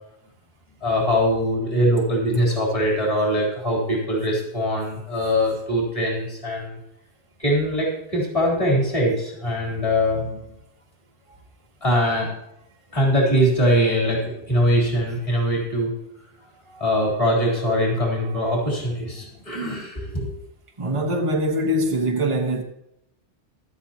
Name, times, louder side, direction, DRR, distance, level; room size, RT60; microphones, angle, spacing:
voice 1, 0.8-6.8 7.4-10.4 11.8-12.3 12.9-15.9 16.7-20.3, equal, 30° left, 3.7 m, -22 dB
voice 2, 20.8-22.6, equal, 25° right, 1.3 m, -23 dB
16.0 x 12.5 x 2.9 m
omnidirectional pair, 1.2 m